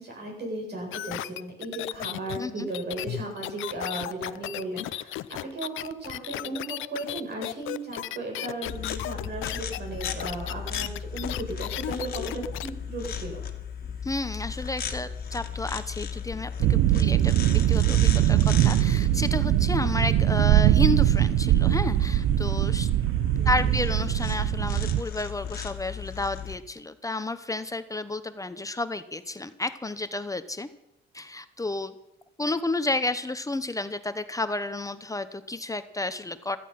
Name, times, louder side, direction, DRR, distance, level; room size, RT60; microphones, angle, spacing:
voice 1, 0.0-5.1 5.4-13.4 23.3-23.7, right 2 dB, 55° right, 0 dB, 7.9 m, -36 dB
sound 1, 0.9-12.7 13.0-13.1, left 15 dB, 80° left, 0.6 m, -35 dB
voice 2, 2.4-2.7 14.0-22.9 23.4-30.7 31.1-31.9 32.4-36.6, left 2 dB, 15° left, 11 dB, 0.9 m, -31 dB
sound 2, 8.6-26.6, left 7 dB, 50° left, 1.8 m, -36 dB
sound 3, 16.6-25.0, right 14 dB, 80° right, 0.5 m, -22 dB
16.0 x 14.0 x 5.9 m, 0.87 s
cardioid pair, 90°, 20 cm